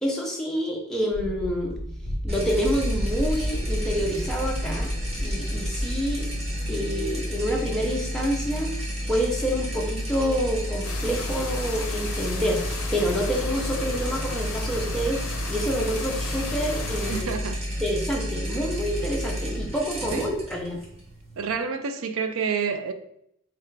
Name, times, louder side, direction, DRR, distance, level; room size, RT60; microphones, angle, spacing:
voice 1, 0.0-1.7 2.2-4.9 5.2-6.3 6.7-8.7 9.1-12.6 12.9-15.2 15.5-17.3 17.8-20.8, equal, 5° left, 0.6 m, -27 dB
sound 1, 1.1-6.6, equal, 45° right, 1.4 m, -32 dB
sound 2, 2.3-21.6, equal, 30° right, 0.9 m, -31 dB
sound 3, 10.8-17.2, left 4 dB, 75° left, 0.5 m, -35 dB
voice 2, 17.1-17.7 20.1-20.2 21.4-22.9, right 5 dB, 70° right, 0.4 m, -28 dB
3.2 x 2.5 x 4.4 m
head